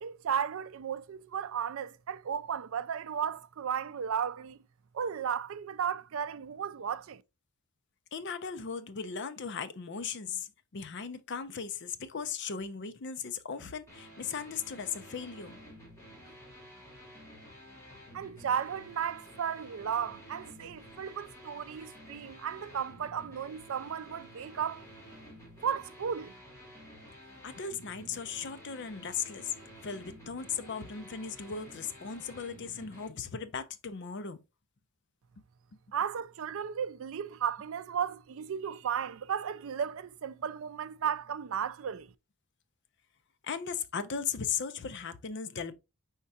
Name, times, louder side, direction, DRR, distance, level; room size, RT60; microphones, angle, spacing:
voice 1, 0.0-4.6 4.9-7.2 18.1-24.8 25.6-26.3 35.9-42.1, right 8 dB, 65° right, 0.4 m, -34 dB
voice 2, 8.1-15.6 27.4-29.5 29.8-34.4 43.4-45.7, left 6 dB, 50° left, 0.5 m, -37 dB
sound 1, 13.9-33.1, equal, 15° left, 1.8 m, -51 dB
5.4 x 3.6 x 2.7 m
head